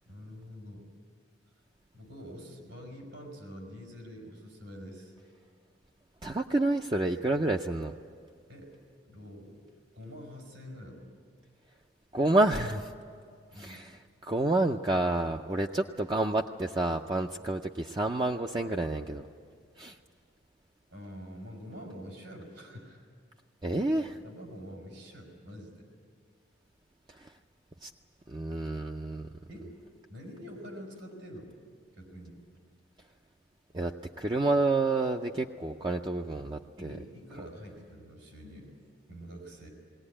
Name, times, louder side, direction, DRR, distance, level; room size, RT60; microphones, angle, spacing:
voice 1, 0.1-0.8 1.9-5.1 8.5-8.7 9.0-9.6 9.9-11.1 13.5-13.9 20.9-23.0 24.2-25.9 29.5-29.7 30.1-31.5 31.9-32.4 36.8-38.7 39.1-39.7, equal, 85° right, 1 dB, 5.5 m, -46 dB
voice 2, 6.2-7.9 12.1-12.9 13.6-19.2 19.8-20.0 23.6-24.2 27.2-27.3 27.8-27.9 28.3-29.3 33.7-33.9 34.2-37.0, right 2 dB, 25° right, 3 dB, 0.5 m, -29 dB
20.0 x 18.5 x 9.9 m, 2.2 s
head